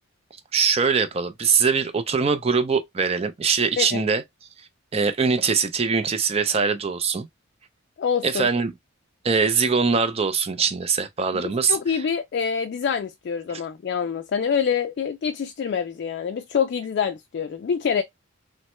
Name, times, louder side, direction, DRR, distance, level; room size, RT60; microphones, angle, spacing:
voice 1, 0.5-4.2 4.9-7.3 8.2-8.7 9.2-12.0, right 5 dB, 30° right, 0.4 m, -22 dB
voice 2, 8.0-8.5 11.3-18.0, left 7 dB, 55° left, 0.3 m, -26 dB
3.2 x 2.1 x 3.0 m
head